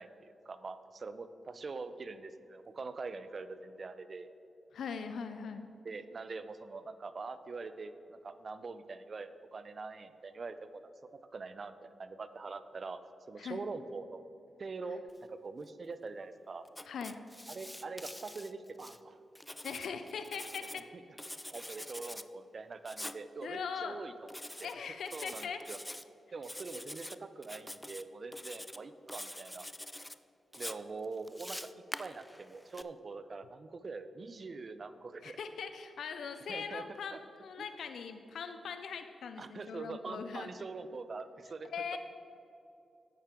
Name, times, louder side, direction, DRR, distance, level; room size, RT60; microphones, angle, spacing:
voice 1, 0.0-4.3 5.8-10.9 11.3-13.0 13.3-14.3 14.6-15.0 15.3-16.7 17.5-19.2 20.7-21.0 21.5-24.3 24.6-24.7 25.1-25.8 26.3-29.7 30.6-31.6 32.0-35.4 36.5-36.8 37.1-37.2 37.6-37.7 39.4-41.7, right 4 dB, 55° right, 12 dB, 0.6 m, -44 dB
voice 2, 4.7-5.7 13.4-13.6 16.9-17.2 19.6-20.9 23.4-24.0 24.6-25.6 35.2-40.5 41.7-42.0, left 6 dB, 75° left, 8 dB, 0.4 m, -41 dB
Writing, 16.7-19.0 19.4-20.8 21.2-22.3 22.9-23.2 24.3-24.7 25.1-26.0 26.4-27.2 27.4-28.0 28.3-28.8 29.1-30.2 30.5-32.8, left 1 dB, 10° left, 0.4 m, -45 dB
9.7 x 8.7 x 3.7 m, 2.8 s
supercardioid pair, 45°, 0 cm